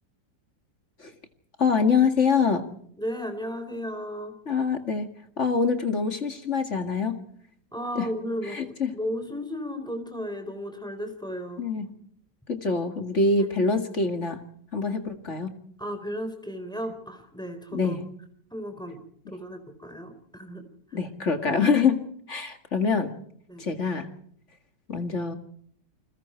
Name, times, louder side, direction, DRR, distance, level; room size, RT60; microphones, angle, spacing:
voice 1, 1.6-2.6 4.5-5.1 5.4-7.2 8.0-8.1 8.5-8.9 11.6-11.9 12.5-14.4 14.7-15.5 17.7-18.0 20.9-22.0 22.3-23.1 23.6-24.1 24.9-25.3, left 5 dB, 40° left, 7 dB, 2.3 m, -25 dB
voice 2, 3.0-4.3 7.7-11.6 15.8-18.0 18.5-19.0 19.3-20.6 20.9-21.0 23.5-23.6, equal, ahead, 7 dB, 4.0 m, -34 dB
29.0 x 21.5 x 4.5 m, 0.65 s
omnidirectional pair, 2.0 m